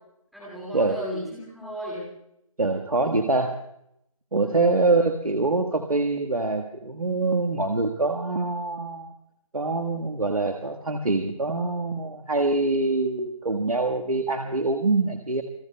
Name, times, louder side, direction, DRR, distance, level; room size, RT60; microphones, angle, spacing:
voice 1, 0.3-2.1 4.4-4.8, equal, ahead, -10 dB, 2.2 m, -35 dB
voice 2, 2.6-3.6 4.3-9.1 9.5-15.4, right 3 dB, 80° right, 3 dB, 1.5 m, -24 dB
27.5 x 21.5 x 2.2 m, 0.76 s
figure-of-eight pair, 175°, 18 cm